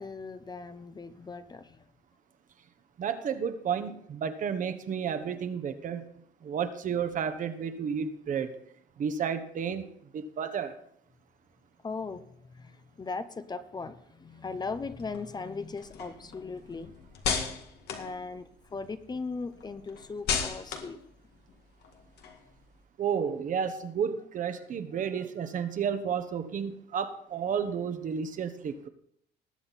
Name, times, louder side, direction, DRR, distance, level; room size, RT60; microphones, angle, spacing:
voice 1, 0.0-1.9 11.8-12.2 12.5-16.9 18.0-21.0 24.9-25.2, left 4 dB, 25° left, 0.8 m, -38 dB
voice 2, 3.0-6.1 6.4-8.6 9.0-9.9 10.1-10.8 23.0-28.9, right 7 dB, 50° right, 1.2 m, -32 dB
sound 1, 14.7-18.9 19.3-22.8, left 6 dB, 75° left, 2.0 m, -36 dB
19.5 x 7.6 x 4.2 m
cardioid pair, 110°, 17 cm